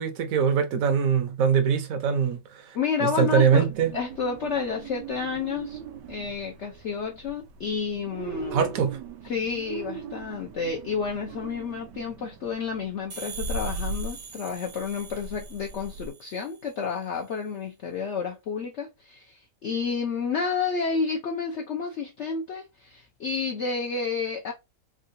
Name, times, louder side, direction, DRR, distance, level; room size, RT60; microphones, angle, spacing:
voice 1, 0.0-3.9 8.5-9.0, right 7 dB, 65° right, 1.0 m, -23 dB
voice 2, 2.7-5.8 6.1-8.7 9.2-24.5, left 5 dB, 60° left, 0.7 m, -30 dB
sound 1, 3.5-16.1, right 3 dB, 90° right, 1.2 m, -39 dB
sound 2, 13.1-16.7, right 6 dB, 35° right, 0.4 m, -43 dB
3.7 x 2.4 x 2.5 m
omnidirectional pair, 1.8 m